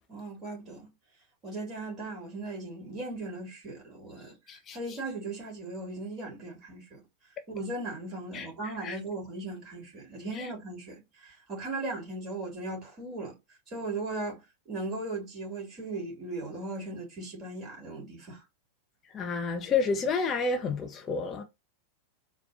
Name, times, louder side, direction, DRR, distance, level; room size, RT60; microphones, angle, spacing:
voice 1, 0.1-0.9 1.4-4.4 4.7-7.0 7.5-13.4 13.7-14.4 14.7-18.4, right 2 dB, 30° right, 2.5 m, -37 dB
voice 2, 19.1-21.4, left 4 dB, 25° left, 0.6 m, -30 dB
4.2 x 2.2 x 3.8 m
figure-of-eight pair, 90°, 0 cm